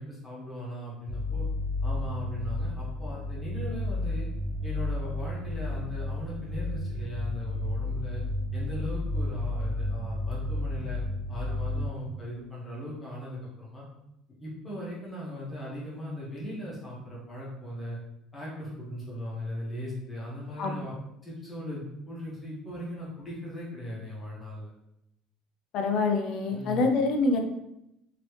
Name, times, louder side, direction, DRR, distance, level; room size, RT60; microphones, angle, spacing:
voice 1, 0.0-1.4 1.8-4.3 4.6-8.2 8.5-11.0 11.3-13.8 14.4-18.0 18.3-20.9 21.2-24.7 26.5-26.9, left 1 dB, 10° left, -7 dB, 1.1 m, -38 dB
sound 1, 1.1-11.9, left 2 dB, 60° right, 0.5 m, -32 dB
voice 2, 25.7-27.4, left 3 dB, 45° left, 4 dB, 0.5 m, -25 dB
3.1 x 2.9 x 3.1 m, 0.84 s
cardioid pair, 175°, 0 cm